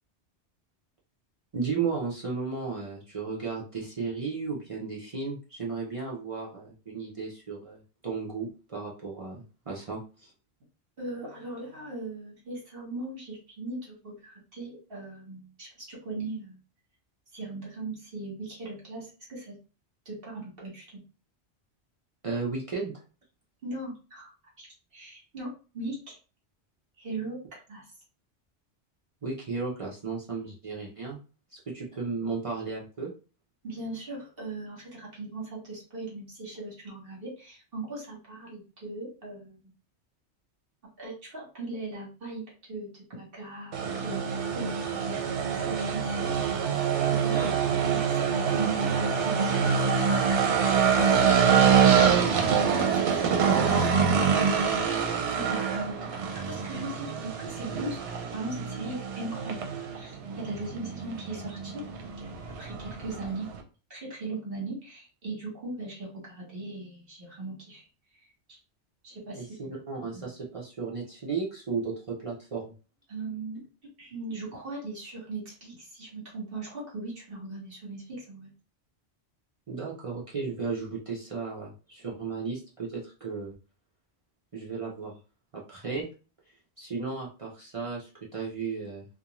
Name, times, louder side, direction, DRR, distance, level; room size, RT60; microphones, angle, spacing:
voice 1, 1.5-10.3 22.2-22.9 29.2-31.2 31.5-33.1 47.3-47.5 69.3-69.5 69.9-72.7 79.7-83.6 84.5-85.1 85.5-86.1 86.8-89.1, right 4 dB, 40° right, -4 dB, 0.5 m, -34 dB
voice 2, 11.0-16.6 17.3-19.6 20.0-21.0 23.6-24.3 24.6-26.2 27.0-27.9 33.6-39.6 41.0-46.6 47.0-47.5 47.8-50.1 50.7-54.9 55.3-58.0 58.3-61.8 62.6-63.5 63.9-67.9 68.1-68.6 69.0-69.8 73.1-73.6 74.0-78.5, right 2 dB, 55° right, -4 dB, 1.2 m, -39 dB
sound 1, 43.7-63.6, right 6 dB, 80° right, 0.9 m, -25 dB
2.4 x 2.2 x 2.9 m, 0.35 s
omnidirectional pair, 1.2 m